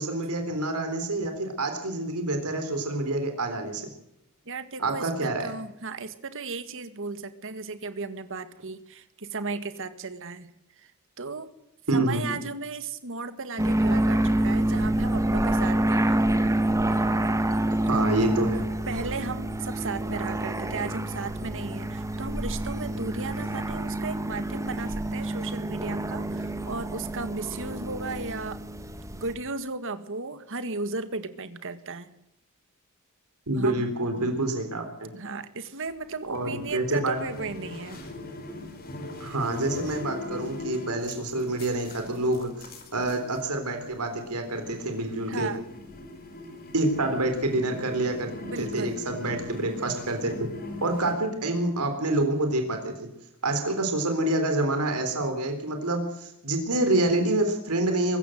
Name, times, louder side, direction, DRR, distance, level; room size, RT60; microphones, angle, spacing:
voice 1, 0.0-3.9 4.8-5.5 11.9-12.2 17.9-18.6 33.5-35.1 36.3-37.2 39.2-45.5 46.7-48.3 48.6-50.5 50.8-53.1 53.4-58.2, right 2 dB, 90° right, 6 dB, 3.8 m, -27 dB
voice 2, 4.5-10.5 10.8-10.9 11.2-11.5 11.9-16.2 18.9-28.6 29.1-32.1 33.5-33.9 35.1-38.0 45.3-45.6 48.4-49.0, right 3 dB, 60° right, 11 dB, 1.9 m, -35 dB
sound 1, 13.6-29.3, right 1 dB, 15° right, 1.7 m, -27 dB
sound 2, 35.9-51.1, left 2 dB, 45° left, 4.4 m, -41 dB
23.5 x 14.5 x 7.9 m, 0.82 s
head